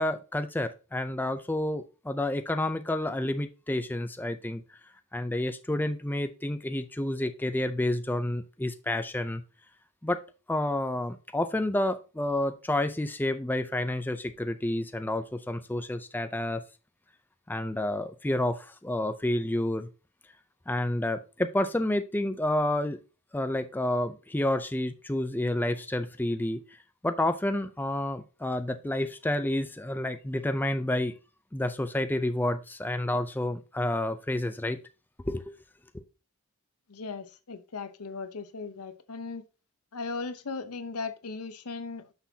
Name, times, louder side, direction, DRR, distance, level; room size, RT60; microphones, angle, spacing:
voice 1, 0.0-4.8 5.1-9.4 10.0-10.2 10.5-16.6 17.5-19.9 20.7-23.0 23.3-26.6 27.0-31.1 31.5-34.8 35.3-35.5 35.9-36.0, left 1 dB, 10° left, 0.5 m, -29 dB
voice 2, 36.9-39.4 39.9-42.1, left 4 dB, 80° left, 0.8 m, -37 dB
9.6 x 6.2 x 2.8 m
head